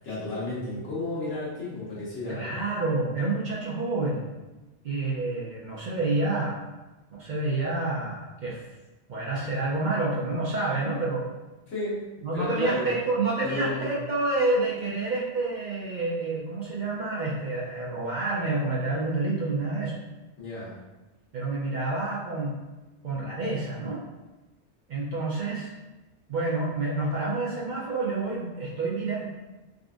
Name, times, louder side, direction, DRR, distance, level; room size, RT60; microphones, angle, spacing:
voice 1, 0.0-2.6 11.7-12.0 12.3-12.9 13.4-13.9 20.4-20.8, left 2 dB, 85° left, -7 dB, 1.4 m, -32 dB
voice 2, 2.3-4.3 4.8-6.6 7.1-8.6 9.1-11.3 12.2-19.9 21.3-22.6 23.0-24.0 24.9-25.7 26.3-29.3, right 2 dB, 55° right, -5 dB, 0.6 m, -28 dB
3.7 x 2.5 x 2.4 m, 1.1 s
omnidirectional pair, 1.2 m